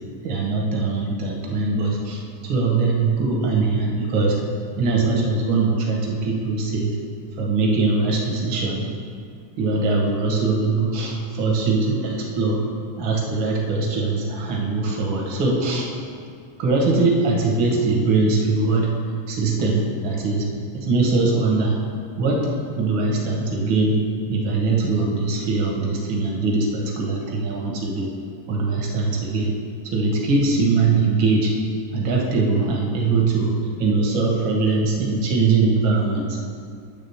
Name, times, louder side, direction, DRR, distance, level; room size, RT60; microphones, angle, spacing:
voice 1, 0.2-4.4 4.8-7.0 7.4-8.9 9.6-12.6 13.0-15.9 16.6-19.0 19.3-20.5 20.7-21.8 22.2-22.5 22.8-24.0 24.3-28.1 28.5-29.5 29.8-31.5 31.9-33.5 33.8-36.4, right 3 dB, 70° right, -1 dB, 1.1 m, -21 dB
10.0 x 3.5 x 7.0 m, 2.3 s
omnidirectional pair, 3.6 m